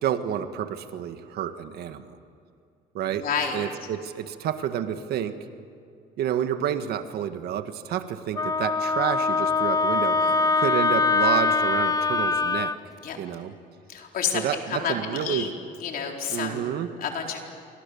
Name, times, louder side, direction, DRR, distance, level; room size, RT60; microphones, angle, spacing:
voice 1, 0.0-2.2 2.9-3.3 3.5-5.4 6.2-10.2 10.6-12.8 13.2-13.5 14.3-15.5 16.3-16.9, right 10 dB, 70° right, 9 dB, 1.7 m, -29 dB
voice 2, 3.0-3.7 10.1-10.4 13.0-13.2 13.9-15.5 15.8-16.7 17.0-17.4, left 6 dB, 60° left, 1 dB, 4.4 m, -30 dB
Wind instrument woodwind instrument, 8.4-12.8, left 4 dB, 20° left, 0.7 m, -23 dB
29.0 x 25.0 x 7.2 m, 2.4 s
cardioid pair, 110°, 17 cm